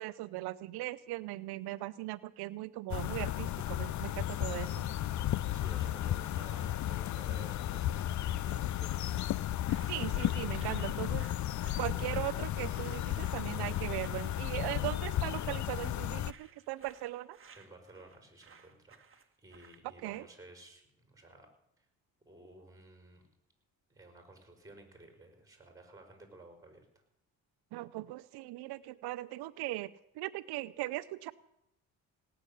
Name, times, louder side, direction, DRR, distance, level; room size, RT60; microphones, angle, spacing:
voice 1, 0.0-4.9 9.9-11.3 11.8-17.4 20.0-20.3 27.7-31.3, right 17 dB, 90° right, 14 dB, 0.6 m, -39 dB
sound 1, 2.9-16.3, left 13 dB, 50° left, 0.5 m, -34 dB
voice 2, 5.5-9.1 17.5-19.0 19.4-21.5 22.2-23.2 23.9-26.9, right 2 dB, 10° right, 5 dB, 5.2 m, -54 dB
sound 2, 9.6-20.4, right 6 dB, 35° right, 1.7 m, -58 dB
17.5 x 7.0 x 10.0 m, 0.80 s
cardioid pair, 90°, 38 cm